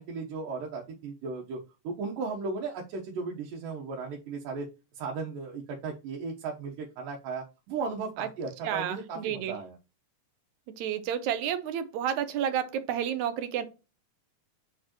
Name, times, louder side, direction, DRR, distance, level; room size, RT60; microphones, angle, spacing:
voice 1, 0.0-1.6 1.8-4.7 4.9-9.8, right 4 dB, 90° right, 2.8 m, -36 dB
voice 2, 8.6-9.6 10.8-13.7, right 9 dB, 75° right, 2.0 m, -30 dB
7.0 x 4.5 x 3.0 m
omnidirectional pair, 3.7 m